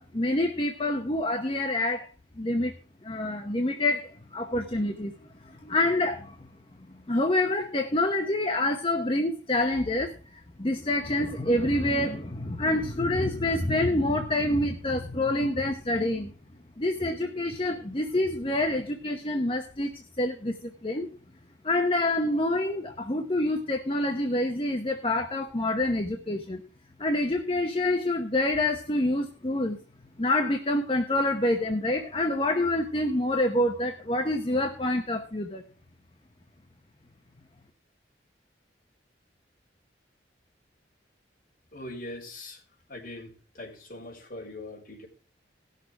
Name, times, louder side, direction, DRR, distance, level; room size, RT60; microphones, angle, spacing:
voice 1, 0.0-2.1 2.4-2.7 3.0-5.1 5.6-6.3 7.1-10.1 10.6-16.3 16.8-20.5 20.8-21.1 21.6-26.6 27.0-29.8 30.2-35.6, left 1 dB, 30° left, 4 dB, 0.9 m, -27 dB
voice 2, 41.7-42.6 42.9-45.1, left 1 dB, 50° left, -2 dB, 4.5 m, -41 dB
17.0 x 6.7 x 4.6 m, 0.37 s
head